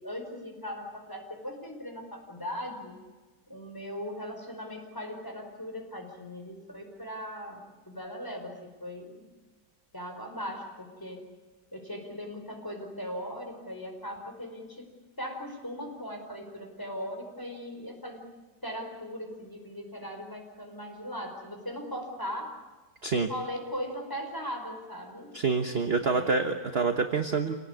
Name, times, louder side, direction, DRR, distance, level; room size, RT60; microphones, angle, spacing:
voice 1, 0.0-3.0 3.5-9.3 9.9-11.2 11.7-14.9 15.2-18.2 18.6-22.6 23.1-25.3 26.1-26.6, equal, 10° left, 3 dB, 5.1 m, -39 dB
voice 2, 25.3-27.5, right 4 dB, 40° right, 6 dB, 1.3 m, -27 dB
27.5 x 18.5 x 9.9 m, 1.3 s
omnidirectional pair, 1.9 m